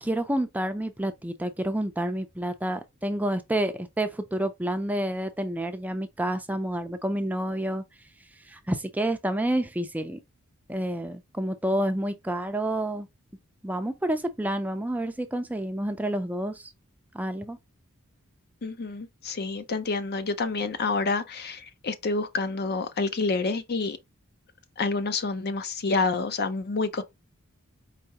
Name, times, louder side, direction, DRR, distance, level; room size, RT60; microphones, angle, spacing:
voice 1, 0.0-7.8 8.5-10.2 10.7-13.1 13.6-16.7 17.1-17.6, right 1 dB, 5° right, 0.4 m, -29 dB
voice 2, 18.6-24.0 24.8-27.0, left 3 dB, 50° left, 0.6 m, -28 dB
4.7 x 3.3 x 2.8 m
head